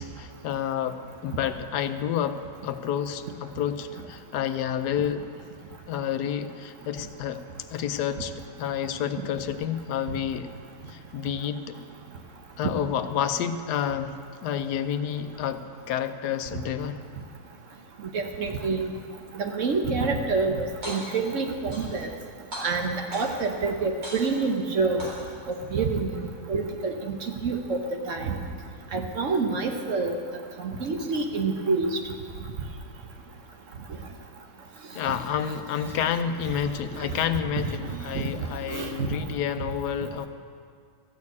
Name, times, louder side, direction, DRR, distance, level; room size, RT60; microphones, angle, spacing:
voice 1, 0.0-5.2 5.9-7.4 7.7-8.3 8.6-10.5 10.9-11.8 12.6-14.1 14.4-17.0 34.9-40.3, left 9 dB, 75° left, 10 dB, 1.1 m, -29 dB
voice 2, 18.1-18.9 19.4-22.1 22.6-25.0 25.7-26.9 27.4-27.8 28.1-28.4 28.9-30.1 30.6-31.9 38.1-38.2 38.7-38.9, right 4 dB, 55° right, 4 dB, 1.1 m, -27 dB
sound 1, 20.8-21.3 21.7-22.2 22.5-23.5 24.0-24.6 25.0-25.6, equal, 85° right, 4.6 m, -38 dB
13.5 x 6.5 x 8.4 m, 2.2 s
omnidirectional pair, 1.8 m